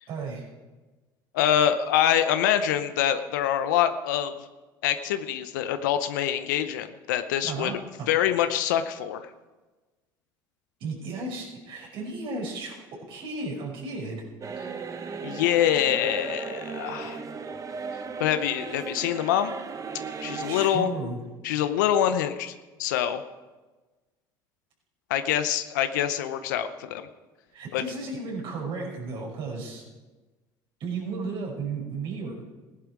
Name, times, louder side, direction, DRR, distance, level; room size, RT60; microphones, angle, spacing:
voice 1, 0.1-0.5 7.5-8.1 10.8-14.2 20.1-21.2 27.5-29.8 30.8-32.4, right 3 dB, 60° right, -2 dB, 5.7 m, -34 dB
voice 2, 1.3-4.4 4.8-7.7 8.1-9.3 15.2-17.2 18.2-19.5 20.2-20.9 21.4-22.5 22.8-23.2 25.1-27.1 27.7-27.8, left 10 dB, 85° left, 10 dB, 0.7 m, -25 dB
sound 1, 14.4-20.7, right 5 dB, 35° right, 1.1 m, -36 dB
16.5 x 11.0 x 4.7 m, 1.2 s
hypercardioid pair, 80°, 10 cm